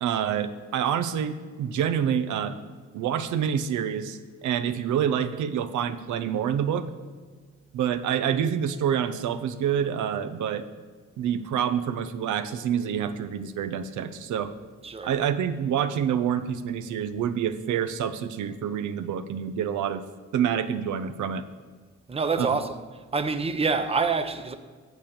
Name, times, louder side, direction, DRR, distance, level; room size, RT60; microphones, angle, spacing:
voice 1, 0.0-2.6 2.9-6.9 7.7-10.6 11.2-14.5 15.0-20.0 20.3-21.4 22.4-22.5, right 8 dB, 75° right, 0.8 m, -27 dB
voice 2, 22.1-22.7 23.1-24.5, right 4 dB, 20° right, 0.8 m, -26 dB
8.2 x 7.1 x 6.6 m
cardioid pair, 90°, 30 cm